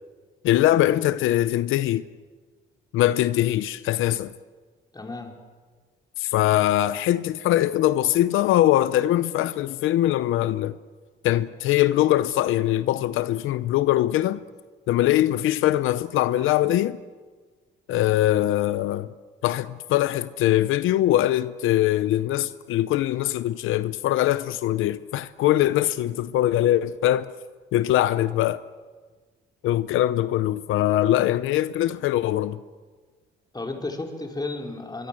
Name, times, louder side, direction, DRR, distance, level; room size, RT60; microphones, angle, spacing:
voice 1, 0.4-2.0 2.9-4.3 6.2-10.7 11.2-14.4 14.9-17.0 17.9-19.1 19.4-27.3 27.7-28.6 29.6-32.6, left 13 dB, 85° left, 0.7 m, -22 dB
voice 2, 4.9-5.3 33.5-35.1, left 2 dB, 20° left, 4.7 m, -33 dB
24.5 x 24.0 x 7.6 m
cardioid pair, 90°, 20 cm